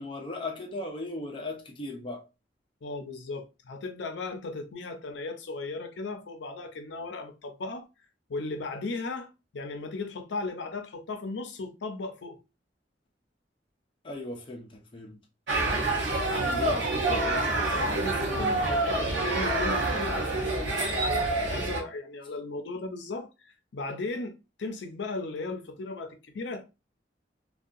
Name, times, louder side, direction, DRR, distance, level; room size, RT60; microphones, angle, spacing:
voice 1, 0.0-2.2 14.0-15.2, left 2 dB, 30° left, 0.4 m, -37 dB
voice 2, 2.8-7.9 8.3-12.4 15.6-15.9 16.2-26.6, left 3 dB, 80° left, 0.5 m, -36 dB
sound 1, 15.5-21.8, right 2 dB, 85° right, 0.7 m, -27 dB
2.6 x 2.2 x 2.4 m
head